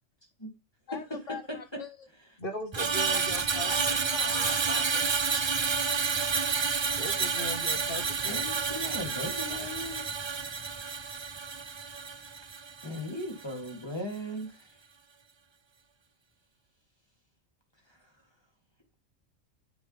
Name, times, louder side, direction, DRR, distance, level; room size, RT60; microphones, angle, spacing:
voice 1, 0.9-2.1 3.1-5.1, left 5 dB, 75° left, 1.9 m, -43 dB
voice 2, 2.4-3.7 7.0-8.5, left 1 dB, 45° left, 1.9 m, -38 dB
Screech, 2.7-13.1 13.4-13.7, right 5 dB, 35° right, 0.4 m, -30 dB
voice 3, 8.2-10.0 12.8-14.8 17.9-18.1, left 1 dB, 20° left, 3.2 m, -38 dB
9.0 x 7.8 x 3.5 m
omnidirectional pair, 1.3 m